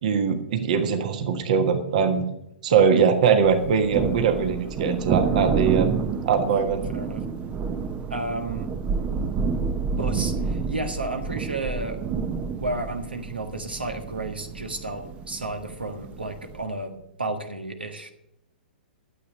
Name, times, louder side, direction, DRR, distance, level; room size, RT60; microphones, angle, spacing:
voice 1, 0.0-2.3 2.6-5.9 6.2-6.8, right 6 dB, 50° right, 7 dB, 1.4 m, -21 dB
Thunder, 3.4-16.6, right 5 dB, 20° right, 0.8 m, -29 dB
voice 2, 6.9-7.2 8.1-8.7 10.0-12.1 12.6-18.1, right 2 dB, 75° right, 5 dB, 1.5 m, -32 dB
12.5 x 8.4 x 6.6 m, 0.83 s
figure-of-eight pair, 110°, 5 cm